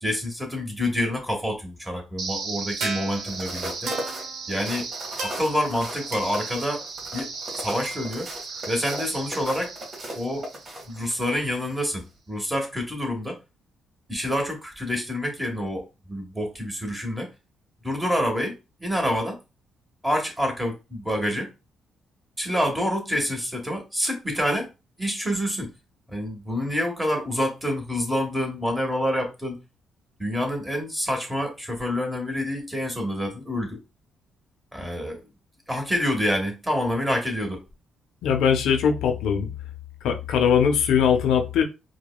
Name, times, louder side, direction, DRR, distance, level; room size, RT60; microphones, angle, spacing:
voice 1, 0.0-3.9 4.5-4.9 5.2-6.8 7.1-7.3 7.6-8.3 8.7-9.7 10.1-10.5 10.9-13.4 14.1-17.3 17.8-19.4 20.0-21.5 22.4-24.7 25.0-25.7 26.1-29.6 30.2-33.8 34.7-35.2 35.7-37.6, equal, 10° right, 1.3 m, -27 dB
sound 1, 2.2-11.2, right 4 dB, 70° right, 0.9 m, -35 dB
sound 2, 3.2-11.4 11.8-12.0, right 1 dB, 40° right, 1.6 m, -37 dB
voice 2, 38.2-39.5 40.0-41.6, left 7 dB, 80° left, 0.6 m, -21 dB
4.7 x 2.2 x 2.3 m
cardioid pair, 90°, 0 cm